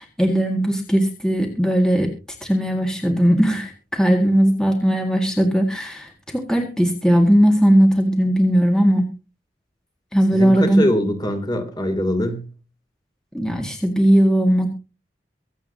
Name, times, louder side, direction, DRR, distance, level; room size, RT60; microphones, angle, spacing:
voice 1, 0.0-2.1 2.4-9.1 10.1-10.9 13.3-14.7, equal, 5° left, 1 dB, 1.9 m, -18 dB
voice 2, 10.3-12.5, equal, 25° left, 5 dB, 2.9 m, -23 dB
24.5 x 8.4 x 2.8 m, 0.32 s
head